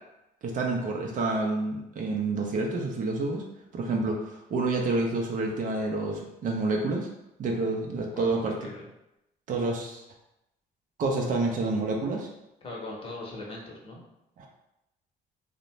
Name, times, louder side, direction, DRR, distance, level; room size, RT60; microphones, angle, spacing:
voice 1, 0.4-3.4 3.7-7.1 7.4-8.5 9.5-10.0 11.0-12.3 14.4-14.5, right 3 dB, 50° right, 0 dB, 0.5 m, -28 dB
voice 2, 8.1-8.9 12.6-14.0, left 2 dB, 35° left, -2 dB, 0.8 m, -40 dB
2.5 x 2.1 x 3.0 m, 0.88 s
cardioid pair, 110°, 17 cm